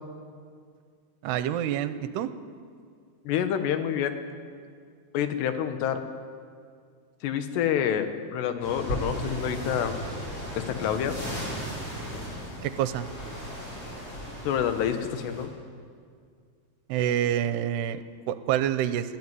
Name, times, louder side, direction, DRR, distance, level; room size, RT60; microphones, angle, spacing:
voice 1, 1.2-2.3 12.6-13.1 16.9-19.2, right 11 dB, 80° right, 12 dB, 2.8 m, -27 dB
voice 2, 3.2-4.1 5.1-6.0 7.2-9.9 10.6-11.2 14.4-15.5, left 9 dB, 85° left, 8 dB, 3.3 m, -27 dB
sound 1, 8.6-15.4, equal, 30° left, 7.2 m, -36 dB
21.0 x 15.0 x 9.7 m, 2.1 s
omnidirectional pair, 4.8 m